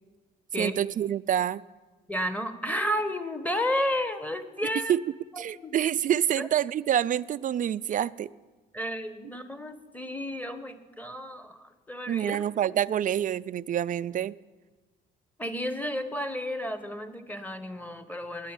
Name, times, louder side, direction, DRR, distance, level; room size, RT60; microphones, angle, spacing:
voice 1, 0.6-1.6 4.9-5.0 5.4-8.3 12.1-14.3, right 10 dB, 40° right, 0.4 m, -27 dB
voice 2, 2.1-5.0 5.3-5.8 6.4-6.5 8.7-12.4 15.4-18.5, equal, 10° left, 1.2 m, -32 dB
9.3 x 9.0 x 8.9 m
supercardioid pair, 65°, 21 cm